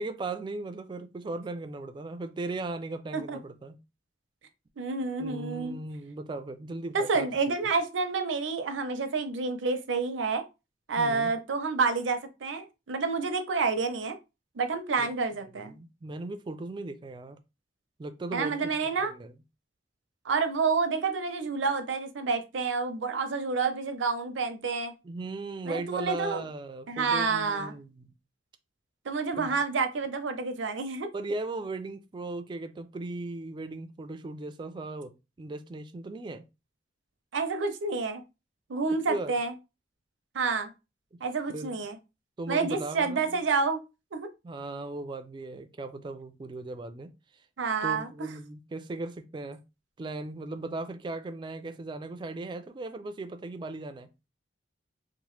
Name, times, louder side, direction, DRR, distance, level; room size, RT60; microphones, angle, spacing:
voice 1, 0.0-3.8 5.2-7.3 11.0-11.3 15.0-15.1 15.5-17.4 18.0-18.7 19.0-19.3 25.0-28.1 29.4-29.5 31.1-36.5 39.1-39.3 41.5-41.8 42.4-43.4 44.4-47.4 47.8-49.6 50.0-54.1, right 2 dB, 25° right, 0.3 m, -37 dB
voice 2, 4.8-5.8 6.9-10.4 10.9-14.1 14.6-15.7 18.3-19.1 20.2-24.9 25.7-26.4 26.9-27.7 29.1-31.1 37.3-38.2 38.7-39.5 40.3-40.7 41.2-42.0 42.5-43.8 44.1-44.3 47.6-48.3, right 4 dB, 90° right, 0.5 m, -29 dB
2.9 x 2.1 x 3.1 m
head